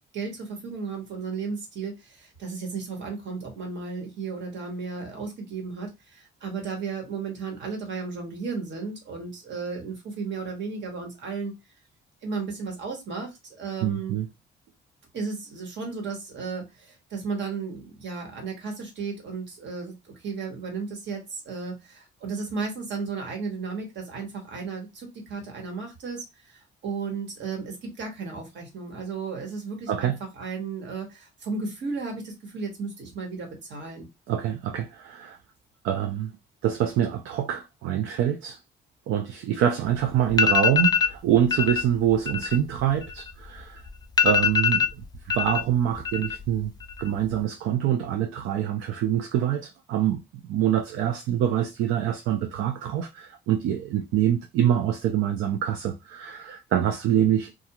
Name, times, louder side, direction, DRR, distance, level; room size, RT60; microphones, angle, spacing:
voice 1, 0.1-11.5 12.2-14.2 15.1-34.1, right 4 dB, 65° right, 1.3 m, -34 dB
voice 2, 13.8-14.3 29.9-30.2 34.3-35.4 35.8-36.3 36.6-38.6 39.1-43.8 44.2-44.9 45.3-46.7 47.0-50.2 50.5-57.5, right 10 dB, 85° right, 0.4 m, -25 dB
sound 1, 39.9-40.0 40.3-41.1 41.5-41.8 42.1-43.6 43.9-44.0 44.2-45.6 45.9-46.5 46.8-47.3, left 7 dB, 20° left, 0.3 m, -23 dB
2.4 x 2.4 x 2.9 m
cardioid pair, 90°, 20 cm